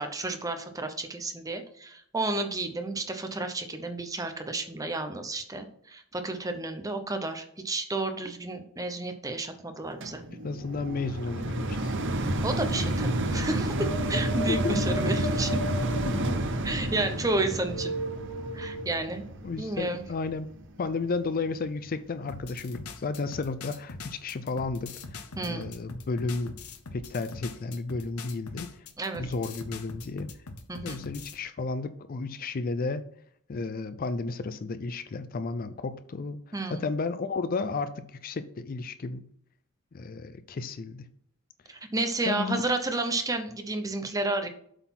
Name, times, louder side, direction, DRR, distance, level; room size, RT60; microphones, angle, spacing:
voice 1, 0.0-10.2 12.4-15.6 16.6-18.0 18.5-19.2 19.6-20.0 25.4-25.7 29.0-29.3 30.7-31.0 36.5-36.8 41.7-44.5, right 2 dB, 15° right, 7 dB, 0.7 m, -31 dB
sound 1, 10.0-21.3 21.9-22.0, right 1 dB, 55° right, 0.8 m, -30 dB
voice 2, 10.4-11.9 14.5-14.8 16.1-16.3 19.4-20.5 20.8-26.5 26.9-28.7 29.2-30.3 30.8-33.0 33.5-36.4 36.7-39.2 39.9-41.1 42.3-42.6, left 3 dB, 40° left, 12 dB, 0.4 m, -33 dB
sound 2, 13.8-18.8, equal, 55° left, 2.1 m, -36 dB
sound 3, 22.3-31.4, left 3 dB, 80° left, 0.9 m, -42 dB
7.9 x 4.1 x 5.8 m, 0.66 s
head